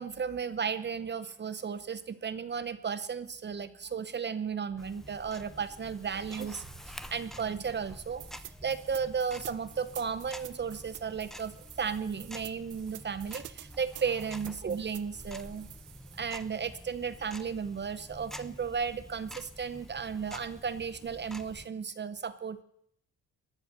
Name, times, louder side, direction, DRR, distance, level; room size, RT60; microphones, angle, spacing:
voice 1, 0.0-8.2 8.6-15.7 16.2-22.6, right 6 dB, 35° right, 12 dB, 0.9 m, -34 dB
Tick-tock, 4.8-21.7, equal, ahead, 1.0 m, -48 dB
sound 1, 8.2-16.2, right 15 dB, 80° right, 0.7 m, -49 dB
18.5 x 10.5 x 6.8 m, 0.72 s
cardioid pair, 90°, 30 cm